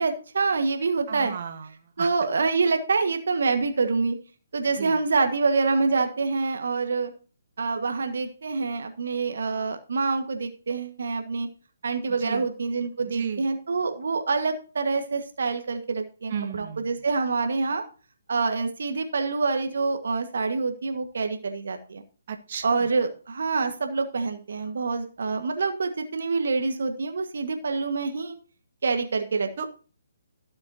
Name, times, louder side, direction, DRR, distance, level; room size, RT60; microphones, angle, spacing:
voice 1, 0.0-1.3 2.0-4.2 4.5-7.1 7.6-11.5 11.8-17.8 18.3-22.0 22.6-28.4 28.8-29.7, right 4 dB, 65° right, 6 dB, 1.5 m, -26 dB
voice 2, 1.1-1.7 2.0-2.1 4.8-5.0 12.2-12.5 13.1-13.4 16.3-16.9 22.3-22.9 29.6-29.7, right 7 dB, 50° right, 4 dB, 1.6 m, -34 dB
17.0 x 7.6 x 2.8 m, 0.37 s
figure-of-eight pair, 140°, 0 cm